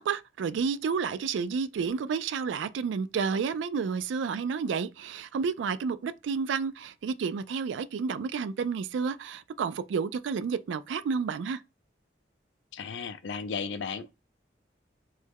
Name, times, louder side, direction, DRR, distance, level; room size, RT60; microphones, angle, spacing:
voice 1, 0.0-11.6, right 5 dB, 85° right, 0.3 m, -30 dB
voice 2, 12.7-14.1, left 5 dB, 80° left, 0.4 m, -35 dB
3.3 x 2.1 x 3.4 m
head